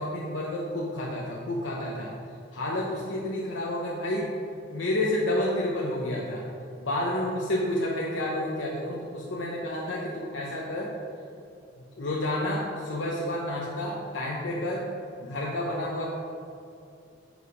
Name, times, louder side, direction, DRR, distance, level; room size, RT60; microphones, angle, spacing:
voice 1, 0.0-2.1 2.5-4.4 4.7-6.5 6.8-11.0 12.0-14.9 15.2-16.1, left 1 dB, 85° left, -3 dB, 1.0 m, -30 dB
10.5 x 4.9 x 5.1 m, 2.6 s
head